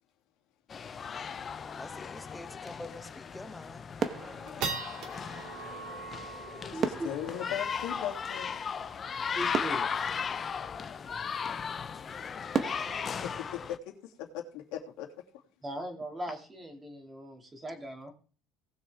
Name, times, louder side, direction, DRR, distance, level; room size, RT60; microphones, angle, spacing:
sound 1, 0.7-13.8, left 6 dB, 25° left, 0.7 m, -37 dB
sound 2, 1.1-1.2 1.5-1.6 2.0-2.2 2.7-2.8 3.3-3.7 4.1-10.7, right 5 dB, 55° right, 2.2 m, -43 dB
voice 1, 1.7-3.9, left 1 dB, 5° left, 8 dB, 1.1 m, -46 dB
sound 3, 3.3-3.7 4.0-5.5 6.8-8.7 9.1-9.2 9.5-11.1 11.7-11.8 12.5-14.4 14.7-15.0, right 6 dB, 30° right, 1.0 m, -37 dB
voice 2, 4.2-5.2 6.5-8.5 13.2-15.1, left 10 dB, 70° left, 2 dB, 2.6 m, -40 dB
voice 3, 6.7-7.1 9.3-9.9 15.6-18.1, right 1 dB, 15° right, 4 dB, 2.3 m, -39 dB
18.5 x 6.5 x 3.5 m, 0.39 s
cardioid pair, 135°, 0 cm